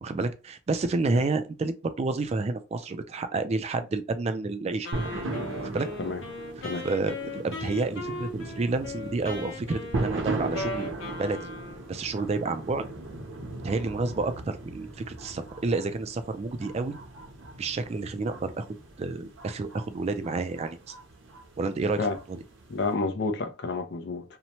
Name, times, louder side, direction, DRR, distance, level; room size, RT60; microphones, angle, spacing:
voice 1, 0.0-4.9 5.6-5.9 6.8-10.9 11.2-11.5 11.9-12.9 13.6-17.0 17.6-18.7 19.0-20.9 21.6-22.0 22.3-22.4, right 3 dB, 35° right, 0.3 m, -29 dB
Wind instrument woodwind instrument, 4.8-12.0, left 2 dB, 80° left, 0.9 m, -38 dB
sound 1, 4.9-22.9, right 2 dB, 90° right, 0.8 m, -38 dB
voice 2, 22.7-24.4, left 3 dB, 60° left, 0.5 m, -30 dB
2.7 x 2.1 x 2.8 m
head